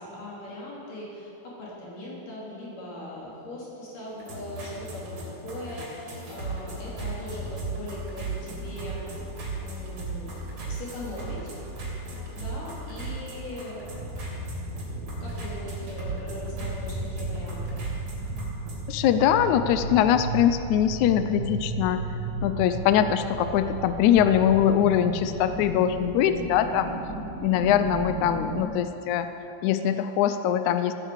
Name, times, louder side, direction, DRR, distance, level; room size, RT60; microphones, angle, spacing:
voice 1, 0.0-9.3 9.6-10.3 10.6-11.5 12.3-13.9 14.7-17.8, left 1 dB, 65° left, -6 dB, 5.3 m, -40 dB
sound 1, 4.1-18.8, right 2 dB, 45° right, 4.2 m, -37 dB
sound 2, 13.6-28.6, right 2 dB, 70° right, 2.9 m, -35 dB
voice 2, 18.9-22.0 22.4-26.9 27.4-29.3 29.6-30.9, left 10 dB, 80° left, 10 dB, 1.7 m, -22 dB
16.0 x 10.0 x 8.1 m, 2.9 s
omnidirectional pair, 4.1 m